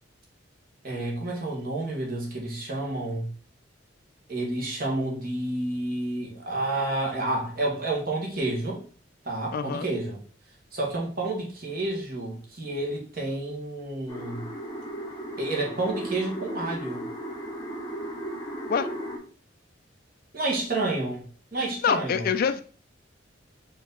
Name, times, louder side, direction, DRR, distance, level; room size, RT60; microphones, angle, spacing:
voice 1, 0.8-3.3 4.3-8.8 9.2-10.2 10.7-14.5 15.4-17.1 20.3-22.3, right 2 dB, 50° right, 1.3 m, -30 dB
voice 2, 9.5-9.9 18.7-18.9 21.8-22.6, left 6 dB, 50° left, 0.3 m, -25 dB
sound 1, 14.1-19.2, right 1 dB, 25° left, 0.8 m, -36 dB
4.7 x 2.7 x 3.8 m
head